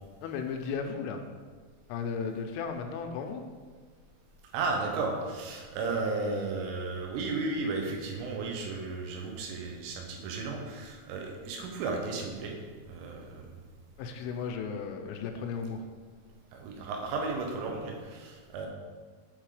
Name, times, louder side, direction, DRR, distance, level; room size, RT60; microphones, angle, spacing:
voice 1, 0.2-1.2 1.9-3.4 14.0-15.8, left 5 dB, 85° left, 5 dB, 3.0 m, -35 dB
voice 2, 4.5-12.6 12.9-13.5 16.5-18.7, right 3 dB, 85° right, 1 dB, 3.5 m, -34 dB
8.5 x 3.7 x 4.8 m, 1.5 s
omnidirectional pair, 5.7 m